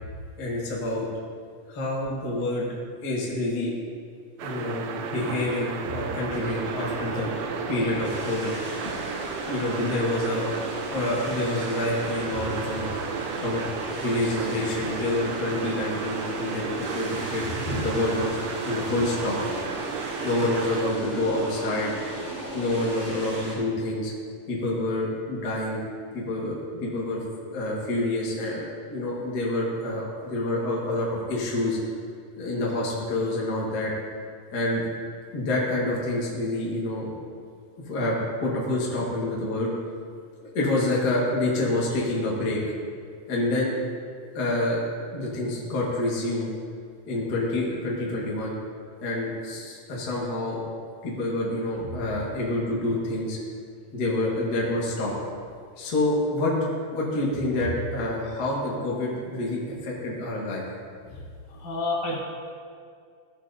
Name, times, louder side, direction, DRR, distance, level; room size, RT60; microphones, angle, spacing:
voice 1, 0.4-1.1 1.7-2.7 3.0-3.7 4.4-7.4 7.7-8.5 9.4-10.5 10.9-12.9 13.4-13.6 14.0-18.4 18.6-19.4 20.2-21.9 22.5-24.1 24.5-25.8 26.1-31.8 32.4-33.9 34.5-34.8 35.3-37.1 37.8-39.7 40.4-42.6 43.3-43.7 44.3-44.8 45.1-46.5 47.1-48.5 49.0-50.6 51.0-53.4 53.9-55.1 55.8-56.5 56.9-60.6, left 1 dB, 40° left, -4 dB, 1.5 m, -27 dB
sound 1, 4.4-20.9, right 6 dB, 80° right, 1.7 m, -34 dB
sound 2, 6.3-23.5, right 1 dB, 25° right, 2.0 m, -36 dB
voice 2, 61.5-62.2, left 2 dB, 65° left, -3 dB, 2.6 m, -30 dB
14.5 x 7.4 x 2.7 m, 2.2 s
omnidirectional pair, 3.9 m